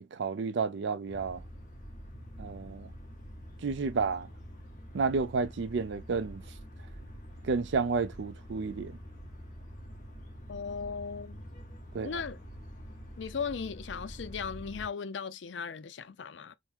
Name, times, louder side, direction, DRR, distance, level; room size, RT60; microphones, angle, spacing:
voice 1, 0.0-1.4 2.4-2.9 3.6-4.3 4.9-6.4 7.5-8.9 11.9-12.2, right 4 dB, 80° right, 0.4 m, -31 dB
sound 1, 1.1-14.9, equal, 45° left, 1.6 m, -46 dB
voice 2, 10.5-11.4 12.0-12.4 13.2-16.5, left 6 dB, 85° left, 0.5 m, -37 dB
3.6 x 2.2 x 4.4 m
head